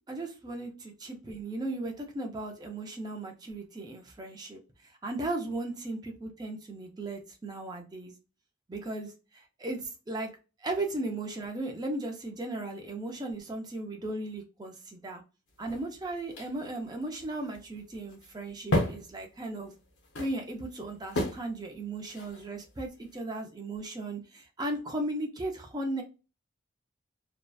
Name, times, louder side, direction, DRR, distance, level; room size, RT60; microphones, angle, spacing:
voice 1, 0.1-8.1 8.7-10.3 10.6-15.2 15.6-19.7 20.2-26.0, right 2 dB, 20° right, 3 dB, 0.4 m, -36 dB
sound 1, 15.5-23.2, left 1 dB, 60° left, 0.6 m, -35 dB
2.6 x 2.1 x 2.2 m, 0.31 s
head